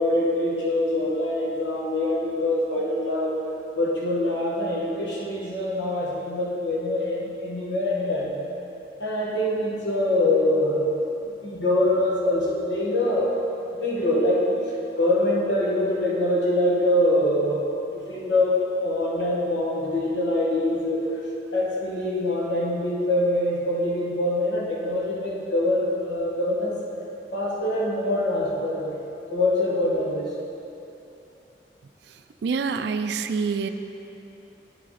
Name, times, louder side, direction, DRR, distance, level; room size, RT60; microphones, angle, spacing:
voice 1, 0.0-3.4 3.7-8.3 9.0-10.9 11.4-13.3 13.8-14.5 15.0-17.7 17.9-21.1 21.5-26.8 27.3-28.9 29.3-30.3, left 1 dB, 85° left, -4 dB, 1.4 m, -24 dB
voice 2, 32.1-33.7, right 5 dB, 65° right, 9 dB, 0.3 m, -27 dB
8.3 x 5.0 x 4.0 m, 2.8 s
head